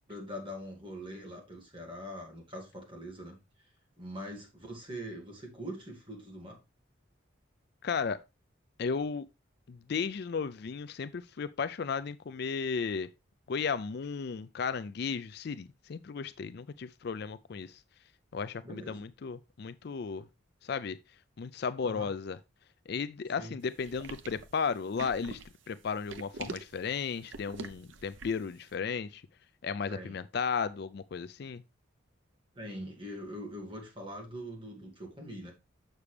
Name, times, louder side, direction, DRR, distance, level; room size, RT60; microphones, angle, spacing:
voice 1, 0.1-3.7 4.0-6.6 18.6-19.0 21.8-22.1 23.4-23.6 29.9-30.2 32.5-35.5, equal, 25° right, 2.3 m, -43 dB
voice 2, 7.8-8.2 8.8-9.3 9.7-13.1 13.5-17.8 18.3-20.2 20.6-21.0 21.4-22.4 22.9-25.4 25.7-29.2 29.6-31.6, left 5 dB, 50° left, 0.4 m, -34 dB
sound 1, 23.8-28.5, right 4 dB, 65° right, 0.7 m, -44 dB
7.0 x 6.7 x 3.3 m
head